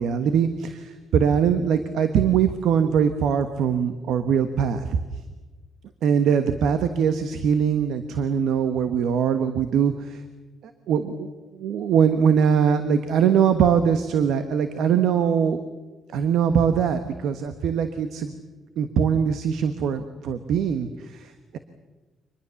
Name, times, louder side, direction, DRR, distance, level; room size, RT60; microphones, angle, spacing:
voice 1, 0.0-5.0 6.0-10.2 10.9-15.6 16.1-18.3 18.8-21.6, right 7 dB, 75° right, 9 dB, 1.3 m, -22 dB
25.0 x 20.5 x 7.1 m, 1.3 s
cardioid pair, 90°, 0 cm